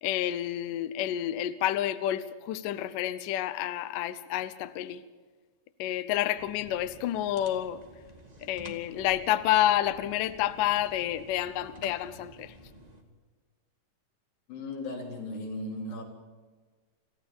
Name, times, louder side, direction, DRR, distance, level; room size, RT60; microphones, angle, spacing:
voice 1, 0.0-5.0 5.8-7.8 8.4-12.5, left 12 dB, 70° left, 2.1 m, -29 dB
sound 1, 6.3-13.0, right 1 dB, 25° right, 0.8 m, -51 dB
voice 2, 14.5-16.0, left 2 dB, 90° left, 5.7 m, -36 dB
26.5 x 15.0 x 7.2 m
omnidirectional pair, 4.6 m